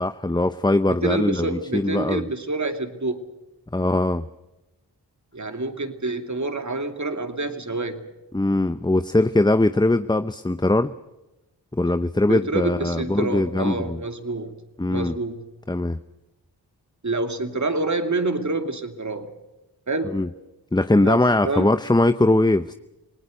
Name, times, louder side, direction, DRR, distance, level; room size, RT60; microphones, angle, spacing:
voice 1, 0.0-2.3 3.7-4.3 8.3-10.9 11.7-14.0 14.8-15.1 15.7-16.0 20.1-20.3 20.7-22.7, left 2 dB, 10° left, 11 dB, 0.7 m, -21 dB
voice 2, 0.9-3.2 5.3-8.1 12.3-14.6 14.9-15.4 17.0-19.4 19.9-20.2 21.0-21.2 21.4-21.7, right 3 dB, 45° right, 7 dB, 2.7 m, -27 dB
27.5 x 19.0 x 6.5 m, 1.0 s
cardioid pair, 45°, 41 cm